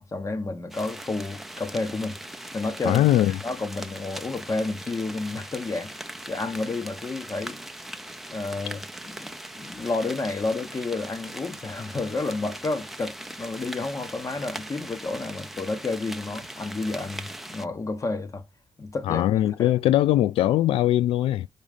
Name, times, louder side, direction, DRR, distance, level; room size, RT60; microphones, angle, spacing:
voice 1, 0.0-2.2 2.5-3.0 3.3-5.9 6.3-7.6 8.3-18.4 18.8-19.2 19.6-19.7, left 3 dB, 35° left, 1.6 m, -30 dB
sound 1, 0.7-17.7, right 1 dB, ahead, 0.7 m, -40 dB
voice 2, 2.8-3.4 19.0-21.5, left 13 dB, 90° left, 0.4 m, -21 dB
5.2 x 5.0 x 5.5 m
cardioid pair, 75°, 9 cm